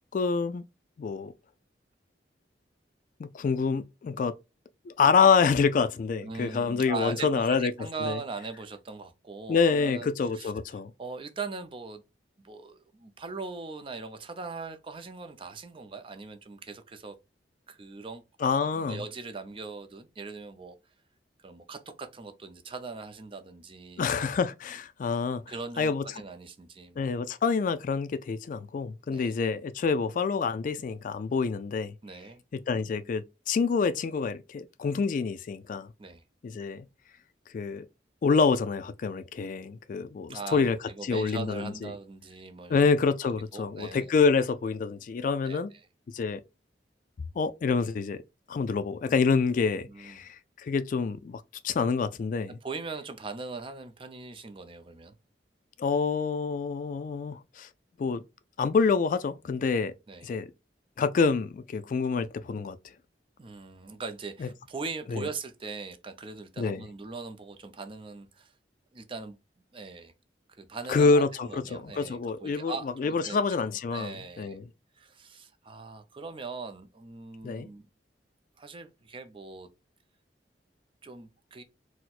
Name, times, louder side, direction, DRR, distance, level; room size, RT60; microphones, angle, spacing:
voice 1, 0.1-0.6 1.0-1.3 3.2-4.3 4.9-7.7 8.0-8.2 9.5-10.9 18.4-19.0 24.0-25.4 25.8-26.0 27.0-31.9 32.5-35.9 36.4-36.8 37.5-37.9 38.2-40.8 41.0-41.9 42.7-45.7 46.1-46.4 47.4-48.2 48.5-52.5 55.8-57.7 58.0-58.2 58.6-59.9 60.2-60.5 61.0-62.8 64.4-64.5 65.1-65.2 66.6-66.8 70.9-74.6 77.4-77.7, left 5 dB, 50° left, 0.3 m, -27 dB
voice 2, 6.2-10.5 11.0-12.0 12.4-17.2 17.7-20.8 21.4-24.4 25.5-27.1 29.1-29.3 32.0-32.4 36.0-36.2 40.3-42.9 43.2-44.1 45.4-45.9 49.9-50.2 52.6-55.1 60.1-60.3 63.4-68.5 68.9-69.4 69.7-70.1 70.6-73.4 73.9-74.6 75.0-77.9 78.6-79.7 81.0-81.6, right 4 dB, 30° right, 0.5 m, -40 dB
4.3 x 2.1 x 2.3 m
head